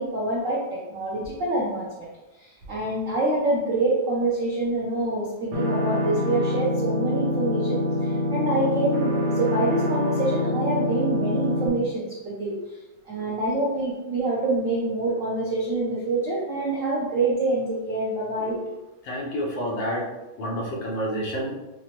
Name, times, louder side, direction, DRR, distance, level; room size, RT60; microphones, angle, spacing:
voice 1, 0.0-2.1 2.4-12.8 13.1-18.8, right 2 dB, 70° right, -5 dB, 0.7 m, -26 dB
sound 1, 5.5-11.7, left 1 dB, 85° right, 1.8 m, -25 dB
voice 2, 19.1-20.1 20.4-21.5, equal, 70° left, -3 dB, 1.4 m, -28 dB
5.3 x 2.0 x 3.0 m, 1.0 s
omnidirectional pair, 2.2 m